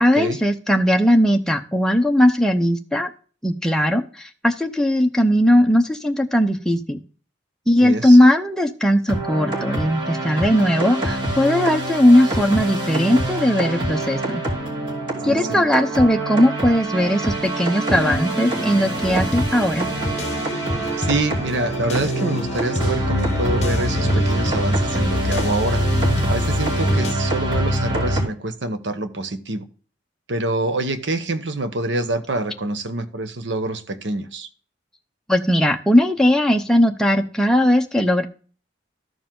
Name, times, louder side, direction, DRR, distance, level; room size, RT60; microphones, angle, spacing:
voice 1, 0.0-3.1 3.4-7.0 7.7-14.4 15.2-19.9 35.3-38.2, left 1 dB, 5° left, 4 dB, 0.7 m, -18 dB
voice 2, 7.8-8.2 15.2-15.6 21.0-25.8 26.3-29.6 30.3-34.5, right 2 dB, 75° right, 9 dB, 1.0 m, -26 dB
sound 1, 9.1-28.2, right 1 dB, 25° right, 2.8 m, -24 dB
sound 2, 17.9-27.1, left 1 dB, 35° left, 0.9 m, -30 dB
13.5 x 4.7 x 3.7 m, 0.40 s
head